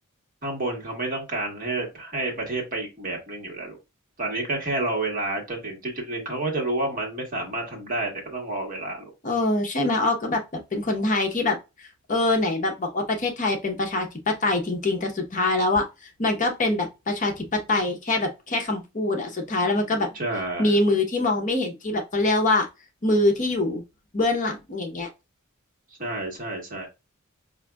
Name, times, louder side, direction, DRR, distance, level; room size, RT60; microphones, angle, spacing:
voice 1, 0.4-3.8 4.2-9.1 20.1-20.8 26.0-26.9, right 2 dB, 40° right, 1.3 m, -29 dB
voice 2, 9.2-20.1 20.6-22.7 23.0-23.8 24.1-25.1, left 2 dB, 35° left, 0.8 m, -24 dB
4.9 x 2.6 x 2.2 m
head